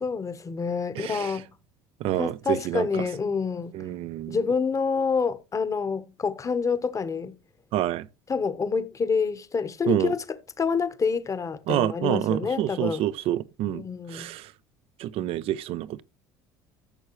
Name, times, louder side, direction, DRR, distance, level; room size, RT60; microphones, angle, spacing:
voice 1, 0.0-1.5 2.2-3.7 4.3-7.3 8.3-10.2 10.6-13.0 13.7-14.3, left 5 dB, 30° left, 1.2 m, -27 dB
voice 2, 0.9-1.4 2.0-3.1 3.7-4.4 7.7-8.1 9.9-10.1 11.7-13.8 14.1-14.5 15.0-16.0, right 13 dB, 65° right, 0.6 m, -28 dB
14.0 x 6.5 x 3.1 m
supercardioid pair, 80°, 11 cm